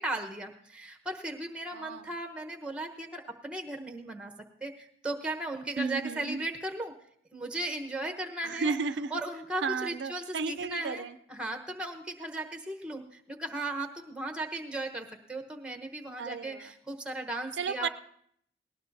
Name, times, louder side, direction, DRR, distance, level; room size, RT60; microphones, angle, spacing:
voice 1, 0.0-4.3 4.6-6.9 7.3-8.7 9.1-11.0 11.3-17.9, right 1 dB, 5° right, 4 dB, 1.0 m, -36 dB
voice 2, 1.7-2.1 5.8-6.4 8.4-9.1 9.6-11.2 16.2-16.6 17.6-17.9, right 5 dB, 85° right, 12 dB, 0.5 m, -33 dB
18.5 x 18.0 x 2.7 m, 0.69 s
head